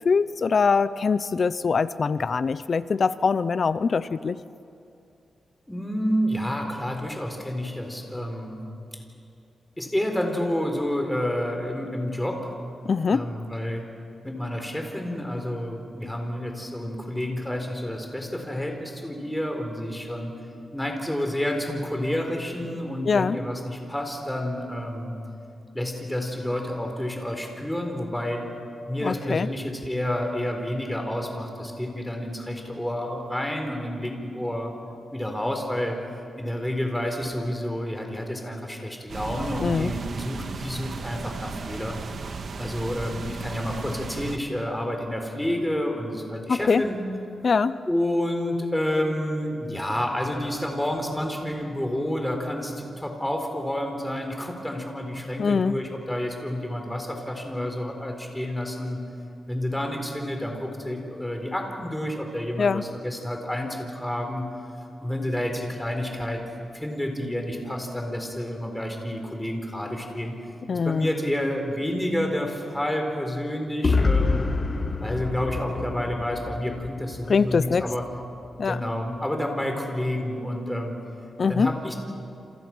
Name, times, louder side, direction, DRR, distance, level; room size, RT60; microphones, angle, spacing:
voice 1, 0.0-4.4 12.8-13.2 23.1-23.4 29.0-29.5 39.6-39.9 46.5-46.8 47.4-47.8 55.4-55.8 62.6-62.8 70.7-71.1 77.3-77.9 78.6-78.8 81.4-81.7, left 5 dB, 50° left, 15 dB, 0.6 m, -23 dB
voice 2, 5.7-8.6 9.8-12.5 13.1-13.9 14.2-20.3 20.7-25.1 25.7-28.5 28.9-34.7 35.1-36.0 36.4-42.0 42.6-47.0 47.9-59.0 59.5-64.5 65.0-66.4 66.7-70.4 70.7-74.5 75.0-78.0 78.6-81.0 81.5-82.0, left 1 dB, 5° left, 3 dB, 4.3 m, -29 dB
sound 1, 39.1-44.4, right 4 dB, 60° right, 1.7 m, -35 dB
sound 2, 73.8-77.7, left 3 dB, 35° left, 1.3 m, -26 dB
28.5 x 27.5 x 6.2 m, 2.5 s
wide cardioid pair, 110°, 0 cm